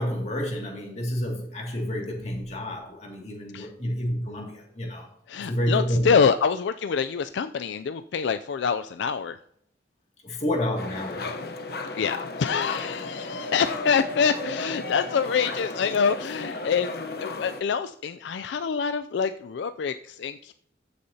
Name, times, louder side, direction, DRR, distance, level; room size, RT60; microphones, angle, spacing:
voice 1, 0.0-5.1 5.4-6.2 10.2-11.3, equal, 35° left, 0 dB, 2.2 m, -29 dB
voice 2, 5.3-9.4 11.9-16.9 17.2-20.5, left 6 dB, 75° left, 10 dB, 0.3 m, -26 dB
sound 1, 10.8-17.6, left 3 dB, 55° left, 0.9 m, -34 dB
14.5 x 6.5 x 2.8 m, 0.69 s
head